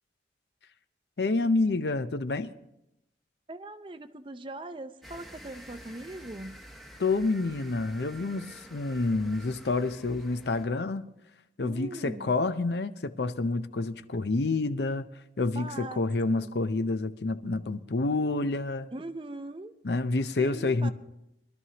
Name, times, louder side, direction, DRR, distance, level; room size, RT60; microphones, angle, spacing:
voice 1, 1.2-2.5 7.0-11.1 11.6-15.1 15.4-18.9 19.8-20.9, left 3 dB, 75° left, 0.6 m, -28 dB
voice 2, 3.5-6.6 11.6-12.4 15.5-16.0 16.3-16.5 18.9-19.7 20.4-20.9, right 2 dB, 30° right, 0.5 m, -41 dB
sound 1, 5.0-10.6, equal, ahead, 0.9 m, -49 dB
22.5 x 12.5 x 2.9 m
head